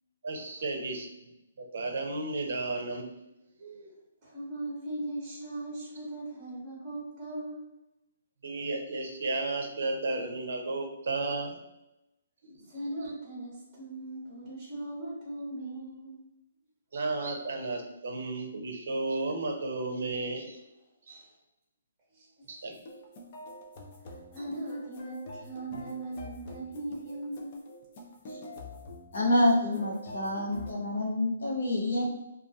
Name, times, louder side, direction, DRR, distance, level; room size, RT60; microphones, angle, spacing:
voice 1, 0.2-1.1 1.6-3.2 3.6-3.9 8.4-11.6 12.4-12.6 16.9-20.6 21.1-21.2 22.5-22.7, right 2 dB, 60° right, 3 dB, 0.5 m, -33 dB
voice 2, 4.2-7.6 12.6-16.2 21.1-21.3 22.1-22.3 22.6-22.7 24.0-27.5, right 1 dB, 15° right, -6 dB, 0.8 m, -39 dB
sound 1, 22.7-30.7, left 1 dB, 35° left, 0.4 m, -46 dB
voice 3, 29.1-32.1, left 1 dB, 85° left, -3 dB, 0.9 m, -27 dB
2.3 x 2.2 x 2.6 m, 0.91 s
hypercardioid pair, 165°, 0 cm